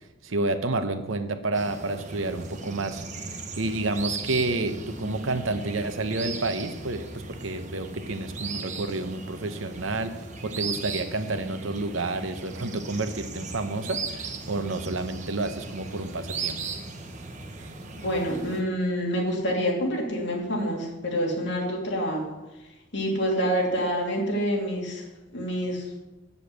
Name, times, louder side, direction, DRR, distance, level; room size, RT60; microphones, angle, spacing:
voice 1, 0.2-16.6 17.6-17.7, right 2 dB, 80° right, 8 dB, 1.0 m, -30 dB
sound 1, 1.5-18.6, right 4 dB, 35° right, 1.1 m, -37 dB
voice 2, 18.0-22.3 22.9-25.0 25.3-25.9, equal, 60° left, -1 dB, 2.8 m, -27 dB
8.1 x 7.0 x 8.3 m, 1.0 s
head